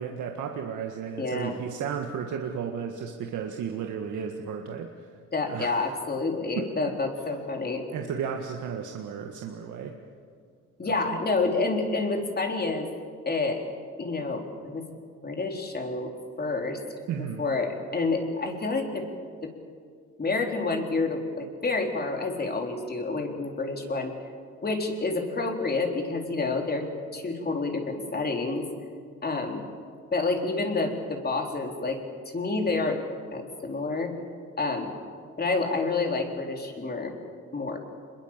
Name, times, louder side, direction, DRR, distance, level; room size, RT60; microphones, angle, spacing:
voice 1, 0.0-4.9 5.4-5.8 6.5-6.7 7.9-10.0 10.9-11.2 17.1-17.4, right 7 dB, 80° right, 3 dB, 1.7 m, -34 dB
voice 2, 1.2-1.6 5.3-7.8 10.8-12.9 13.3-13.6 14.0-14.8 15.2-16.1 16.4-16.8 17.4-19.1 19.4-19.5 20.2-24.1 24.6-26.8 27.1-28.7 29.2-29.7 30.1-32.0 32.3-33.0 33.3-34.1 34.6-34.9 35.4-37.1 37.5-37.8, left 3 dB, 30° left, 3 dB, 3.9 m, -28 dB
26.0 x 21.5 x 7.4 m, 2.1 s
cardioid pair, 90°, 30 cm